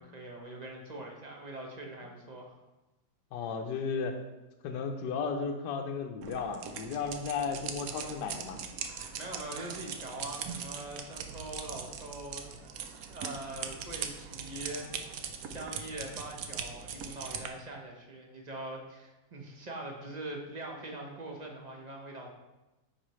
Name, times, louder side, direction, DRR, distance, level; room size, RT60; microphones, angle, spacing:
voice 1, 0.0-2.5 9.1-12.5 13.0-14.9 15.4-22.3, right 1 dB, 30° right, 0 dB, 0.8 m, -43 dB
voice 2, 3.3-4.2 4.6-8.6, left 5 dB, 75° left, 4 dB, 1.3 m, -34 dB
sound 1, 6.2-17.5, right 7 dB, 65° right, 0.9 m, -41 dB
10.0 x 4.8 x 3.1 m, 1.0 s
omnidirectional pair, 2.0 m